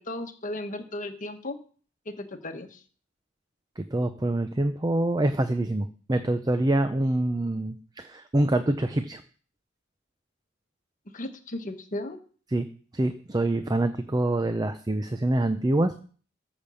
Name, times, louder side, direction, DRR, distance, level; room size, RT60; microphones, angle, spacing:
voice 1, 0.0-1.6 2.0-2.8 11.1-12.2, left 1 dB, 40° left, 6 dB, 1.4 m, -35 dB
voice 2, 3.8-9.2 12.5-12.7 12.9-15.9, right 1 dB, 20° right, 9 dB, 0.6 m, -25 dB
13.5 x 5.2 x 7.0 m, 0.42 s
head